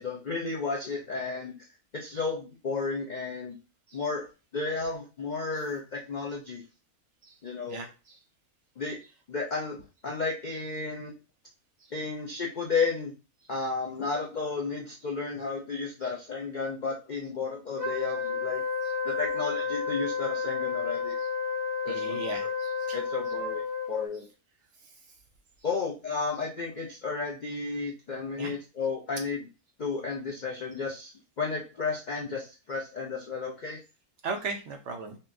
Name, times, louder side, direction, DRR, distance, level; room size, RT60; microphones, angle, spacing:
voice 1, 0.0-1.5 1.9-3.6 3.9-4.3 4.5-6.6 7.4-7.8 8.8-9.0 9.3-9.8 10.0-11.1 11.9-13.1 13.5-18.6 19.0-21.2 21.8-22.1 22.4-22.5 22.9-23.6 23.9-24.3 25.6-29.5 29.8-31.1 31.4-33.8, left 4 dB, 60° left, -1 dB, 0.4 m, -32 dB
voice 2, 7.7-8.2 21.9-23.0 28.4-28.5 34.2-35.2, right 4 dB, 65° right, 4 dB, 0.8 m, -37 dB
Wind instrument woodwind instrument, 17.8-24.1, left 5 dB, 30° right, 0.3 m, -31 dB
5.4 x 2.2 x 2.5 m, 0.31 s
omnidirectional pair, 1.6 m